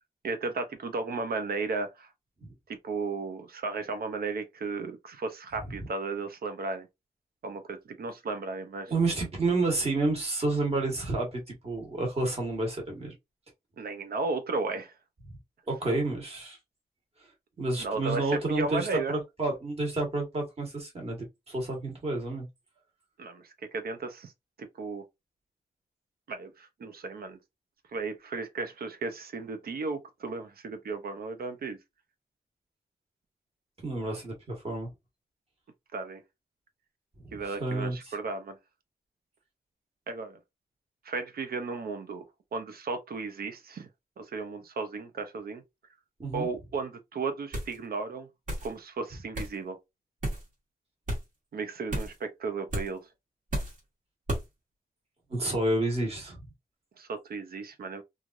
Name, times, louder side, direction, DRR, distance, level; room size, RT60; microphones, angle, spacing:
voice 1, 0.2-2.1 2.8-6.9 7.4-8.9 13.8-14.9 17.8-18.2 18.5-19.1 23.2-23.4 23.7-24.3 24.6-25.0 26.3-27.4 27.9-31.8 35.9-36.2 37.3-38.6 40.1-40.4 41.0-42.2 42.5-43.9 44.2-45.6 46.3-48.3 48.6-49.8 51.5-53.0 57.0-58.0, right 4 dB, 85° right, 0.6 m, -34 dB
voice 2, 8.9-13.1 15.3-15.4 15.7-16.6 17.6-22.5 33.8-34.9 37.2-38.1 46.2-46.5 55.3-56.4, right 2 dB, 40° right, 1.3 m, -30 dB
sound 1, 47.5-47.8 48.5-48.7 49.3-49.5 50.2-50.5 51.1-51.2 51.9-52.2 52.7-52.9 53.5-53.8 54.3-54.5, right 1 dB, 60° right, 1.4 m, -32 dB
3.1 x 2.4 x 2.5 m
wide cardioid pair, 150°, 15 cm